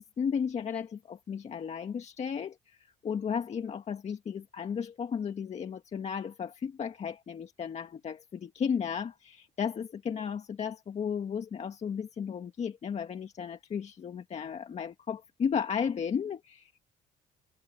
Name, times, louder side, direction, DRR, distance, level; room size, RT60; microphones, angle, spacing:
voice 1, 0.0-16.8, left 7 dB, 40° left, 1.8 m, -34 dB
cardioid pair, 110°, 17 cm